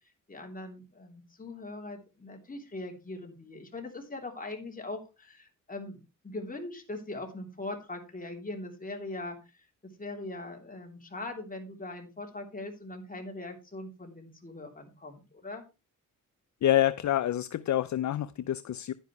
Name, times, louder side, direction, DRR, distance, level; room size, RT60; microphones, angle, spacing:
voice 1, 0.3-9.4 10.0-15.6, left 2 dB, 25° left, 3.2 m, -41 dB
voice 2, 16.6-18.9, left 12 dB, 60° left, 0.5 m, -27 dB
10.5 x 10.0 x 3.1 m
wide cardioid pair, 115°, 33 cm